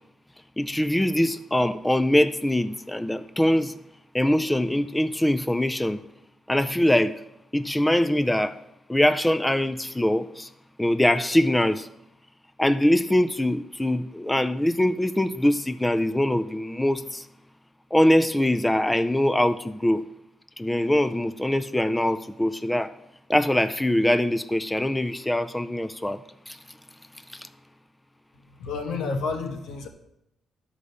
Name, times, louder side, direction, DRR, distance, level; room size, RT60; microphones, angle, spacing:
voice 1, 0.6-3.7 4.1-6.0 6.5-7.2 7.5-8.6 8.9-10.5 10.8-11.9 12.6-17.2 17.9-20.0 20.6-22.9 23.3-26.2 26.5-26.6, left 1 dB, 10° left, 0.4 m, -23 dB
voice 2, 28.6-29.9, left 4 dB, 90° left, 1.4 m, -30 dB
11.5 x 5.0 x 6.8 m
cardioid pair, 100°, 0 cm